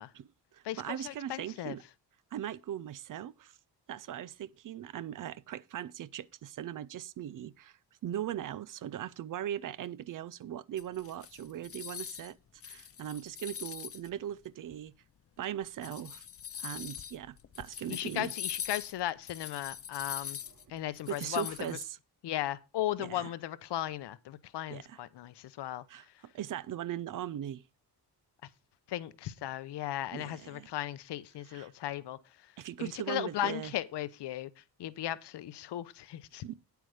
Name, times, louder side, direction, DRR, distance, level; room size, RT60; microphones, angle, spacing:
voice 1, 0.1-1.8 2.3-3.6 3.9-12.4 12.6-14.9 15.4-16.3 16.6-18.3 21.1-21.8 23.0-23.3 24.7-25.0 25.9-27.6 30.1-30.7 31.5-31.7 32.6-33.7 36.4-36.5, right 11 dB, 55° right, 0.4 m, -39 dB
voice 2, 0.6-1.8 17.9-20.4 20.7-21.6 22.2-25.8 28.9-32.2 32.8-36.4, left 13 dB, 75° left, 0.8 m, -36 dB
sound 1, 10.8-12.3 12.6-14.1 14.7-14.8 15.6-21.8, left 9 dB, 35° left, 0.5 m, -42 dB
9.2 x 8.2 x 4.9 m
wide cardioid pair, 160°, 41 cm